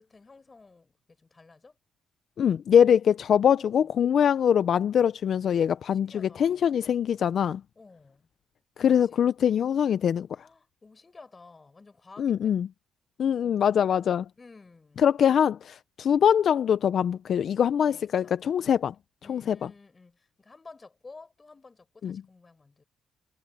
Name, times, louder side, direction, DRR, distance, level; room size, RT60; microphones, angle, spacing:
voice 1, 0.0-1.8 3.3-4.1 5.9-6.7 7.8-8.3 9.0-9.3 10.3-12.6 13.4-13.8 14.4-15.3 17.9-18.4 19.2-22.8, left 3 dB, 25° left, 5.4 m, -52 dB
voice 2, 2.4-7.6 8.8-10.3 12.2-12.7 13.2-14.2 15.0-18.9 19.3-19.7 22.0-22.2, left 8 dB, 60° left, 0.5 m, -23 dB
cardioid pair, 90°, 0 cm